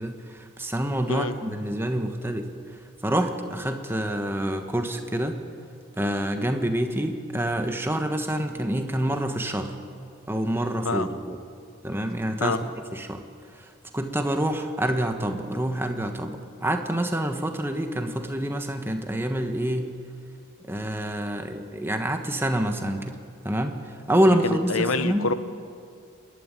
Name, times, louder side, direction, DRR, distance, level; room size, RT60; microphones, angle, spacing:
voice 1, 0.0-2.5 3.0-5.4 6.0-9.8 10.3-11.4 11.8-13.2 13.5-19.9 20.7-23.2 23.4-25.3, right 1 dB, 10° right, 5 dB, 1.3 m, -27 dB
voice 2, 24.4-25.3, left 3 dB, 75° left, 11 dB, 1.1 m, -26 dB
28.0 x 13.0 x 9.9 m, 2.4 s
head